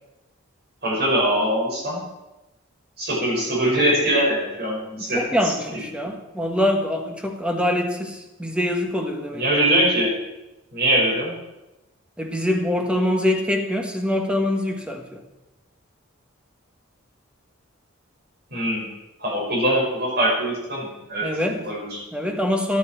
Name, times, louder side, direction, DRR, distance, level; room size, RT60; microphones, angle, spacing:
voice 1, 0.8-2.0 3.0-5.2 6.0-6.1 9.3-10.1 10.7-11.3 18.5-18.8 19.2-21.3 21.6-22.0, right 1 dB, 50° right, -4 dB, 5.9 m, -22 dB
voice 2, 5.0-9.4 12.2-15.2 21.2-21.6 22.1-22.8, left 1 dB, 5° right, 4 dB, 1.4 m, -24 dB
14.0 x 11.0 x 4.6 m, 0.99 s
head